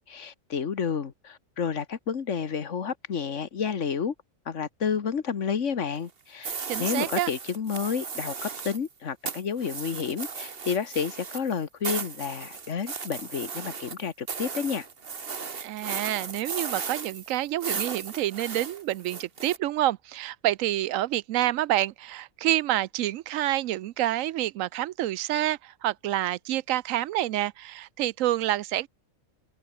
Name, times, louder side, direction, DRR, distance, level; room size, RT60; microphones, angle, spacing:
voice 1, 0.0-4.1 4.5-14.9, left 6 dB, 70° left, 1.7 m, -30 dB
sound 1, 6.4-8.9 9.3-19.6, right 5 dB, 50° right, 1.6 m, -36 dB
voice 2, 6.7-7.3 15.6-28.9, right 14 dB, 85° right, 1.0 m, -28 dB
omnidirectional pair, 1.3 m